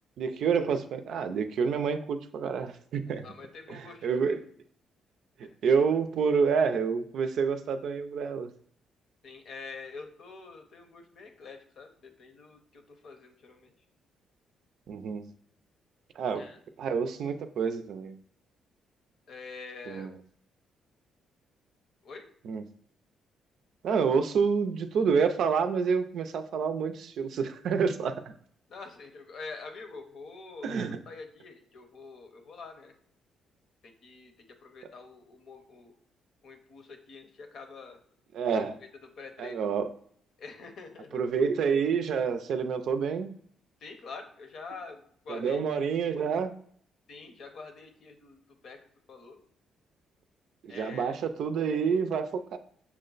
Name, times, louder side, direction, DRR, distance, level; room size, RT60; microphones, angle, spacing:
voice 1, 0.2-3.2 3.7-4.4 5.6-8.5 14.9-15.3 16.2-16.4 16.8-18.2 19.9-20.1 22.4-22.6 23.8-28.3 30.6-31.0 38.3-38.8 39.4-39.9 41.1-43.3 45.3-46.5 50.6-52.6, right 6 dB, 70° right, 8 dB, 0.4 m, -28 dB
voice 2, 3.1-4.2 5.4-5.6 9.2-13.7 16.3-16.6 19.3-20.1 22.0-22.2 28.7-32.9 33.8-35.9 36.4-38.0 38.5-38.6 39.0-39.6 40.4-41.2 43.8-45.6 47.1-48.8 49.1-49.4 50.7-51.2, left 4 dB, 65° left, 5 dB, 0.8 m, -46 dB
6.0 x 2.1 x 3.9 m, 0.63 s
cardioid pair, 90°, 0 cm